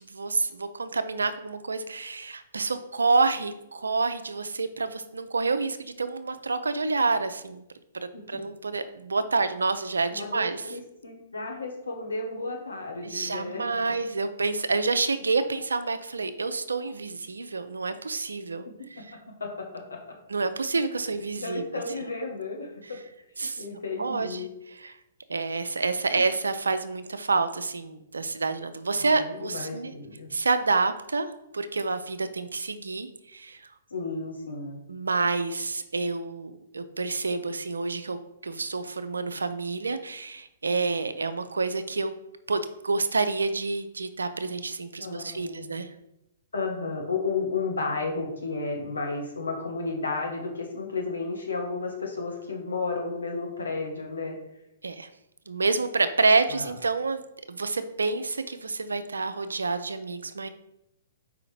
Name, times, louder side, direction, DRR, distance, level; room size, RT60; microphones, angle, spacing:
voice 1, 0.0-7.6 7.9-10.6 13.0-19.2 20.3-21.8 23.4-23.6 24.0-25.0 25.3-29.9 30.3-33.6 34.9-42.1 42.5-45.9 54.8-55.1 55.5-57.2 57.5-60.5, right 3 dB, 85° right, 10 dB, 0.5 m, -28 dB
voice 2, 10.1-13.6 18.6-19.0 19.4-20.1 21.4-23.0 23.4-24.5 26.2-26.3 29.0-30.3 33.9-34.8 45.0-45.8 46.5-54.3 56.5-56.7, left 3 dB, 85° left, 1 dB, 1.4 m, -33 dB
4.9 x 3.8 x 4.9 m, 0.84 s
hypercardioid pair, 120°, 0 cm